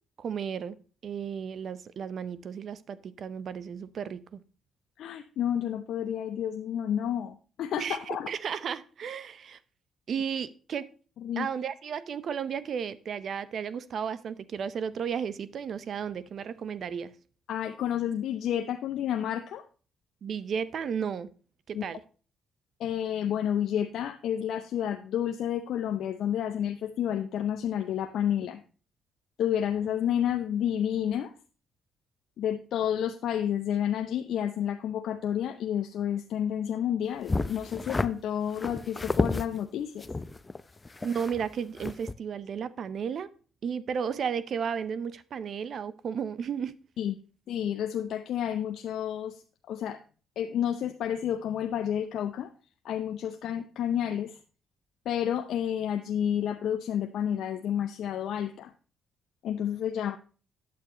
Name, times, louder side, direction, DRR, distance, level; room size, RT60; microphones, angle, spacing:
voice 1, 0.2-0.8 1.0-4.4 7.8-9.6 10.1-10.9 11.4-17.1 20.2-21.3 21.7-22.0 41.0-43.3 43.6-46.7, right 7 dB, 60° right, 0.6 m, -33 dB
voice 2, 5.0-8.3 11.2-11.5 17.5-19.6 21.7-21.9 22.8-28.6 29.4-31.3 32.4-40.1 47.0-47.1 47.5-49.4 49.7-50.0 50.4-52.5 52.8-54.4 55.1-58.7 59.4-60.2, left 9 dB, 75° left, 0.5 m, -30 dB
sound 1, 37.3-38.1 38.5-39.5 40.0-41.5 41.8-42.1, left 3 dB, 25° left, 0.5 m, -30 dB
9.4 x 8.0 x 3.0 m
supercardioid pair, 70°, 0 cm